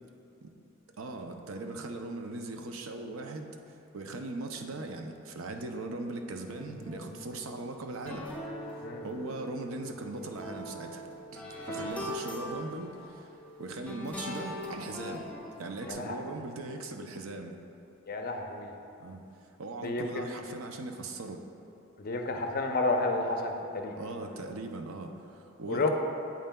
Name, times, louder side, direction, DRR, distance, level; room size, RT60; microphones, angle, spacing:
voice 1, 1.0-8.3 9.0-11.0 11.3-13.3 13.6-15.3 15.6-17.5 19.0-19.2 19.6-21.4 23.9-25.9, right 2 dB, 70° right, 4 dB, 0.5 m, -39 dB
sound 1, 6.5-15.9, left 1 dB, 5° left, 0.8 m, -42 dB
voice 2, 15.9-16.2 18.1-18.7 19.8-20.3 22.0-24.0 25.7-25.9, left 2 dB, 45° left, 3 dB, 0.6 m, -31 dB
8.9 x 7.5 x 2.2 m, 2.8 s
head